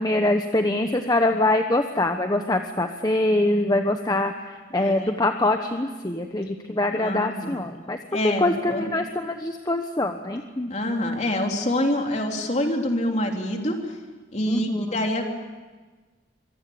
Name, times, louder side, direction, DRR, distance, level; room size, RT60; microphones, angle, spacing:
voice 1, 0.0-8.0 8.2-10.7 14.5-15.0, left 2 dB, 20° left, 6 dB, 1.1 m, -24 dB
voice 2, 4.8-5.2 6.9-7.6 8.1-9.0 10.7-13.9 14.3-15.2, left 1 dB, 40° left, 2 dB, 3.3 m, -26 dB
24.5 x 23.5 x 8.6 m, 1.3 s
head